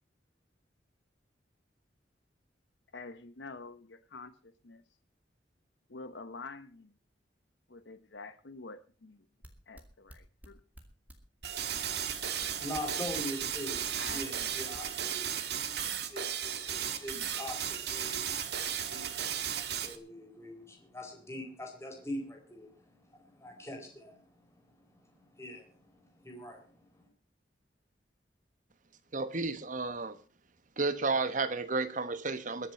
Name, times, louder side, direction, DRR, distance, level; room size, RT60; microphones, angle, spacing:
voice 1, 2.9-4.8 5.9-6.9 7.7-9.3 9.7-10.6 12.4-12.6 14.0-14.5, left 3 dB, 75° left, 1.0 m, -47 dB
sound 1, 9.4-14.9, equal, 10° right, 2.5 m, -50 dB
sound 2, 11.4-20.0, right 9 dB, 65° right, 1.5 m, -35 dB
voice 2, 12.4-27.1, left 1 dB, 15° left, 4.1 m, -44 dB
voice 3, 29.1-30.2 30.8-32.7, right 3 dB, 45° right, 1.2 m, -32 dB
22.0 x 7.5 x 5.7 m
head